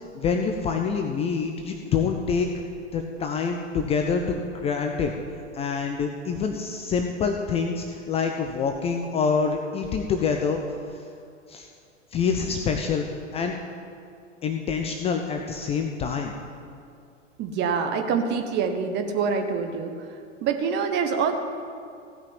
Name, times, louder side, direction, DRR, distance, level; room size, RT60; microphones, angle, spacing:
voice 1, 0.1-2.5 2.9-5.1 5.5-10.6 10.9-11.0 11.5-11.7 12.1-13.0 13.3-13.5 14.4-16.3, left 5 dB, 15° left, 3 dB, 0.6 m, -26 dB
voice 2, 17.4-20.1 20.4-21.3, right 6 dB, 30° right, 5 dB, 1.2 m, -25 dB
16.0 x 5.8 x 8.9 m, 2.3 s
figure-of-eight pair, 95°, 37 cm